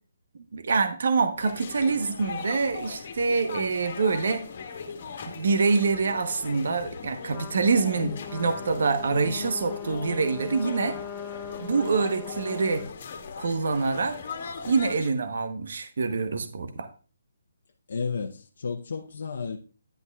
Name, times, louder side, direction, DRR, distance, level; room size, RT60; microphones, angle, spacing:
voice 1, 0.5-4.4 5.2-11.0 11.6-12.9 13.4-14.2 14.7-16.9, right 4 dB, 60° right, 1.0 m, -25 dB
sound 1, 1.4-15.1, left 5 dB, 45° left, 1.5 m, -40 dB
Trumpet, 7.3-12.9, left 9 dB, 15° left, 0.8 m, -40 dB
voice 2, 9.1-9.5 17.9-19.6, left 5 dB, 65° left, 0.8 m, -33 dB
10.5 x 8.4 x 2.3 m
hypercardioid pair, 165°, 0 cm